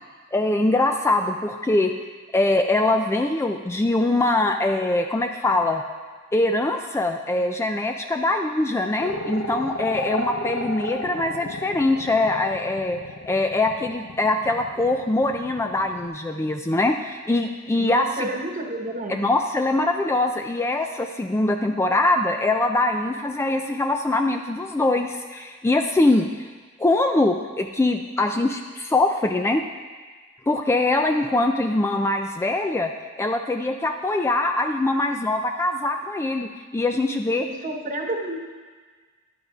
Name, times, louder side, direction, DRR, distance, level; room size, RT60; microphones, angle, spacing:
voice 1, 0.3-1.9 2.3-5.8 6.3-13.0 13.3-18.3 19.1-26.3 26.8-29.6 30.5-32.9 33.2-37.5, left 2 dB, 15° left, 4 dB, 0.3 m, -23 dB
sound 1, 9.0-16.0, left 2 dB, 70° left, 0.8 m, -33 dB
voice 2, 17.7-19.2 37.4-38.4, right 1 dB, 40° right, 2 dB, 1.2 m, -30 dB
14.0 x 10.5 x 2.4 m, 1.5 s
head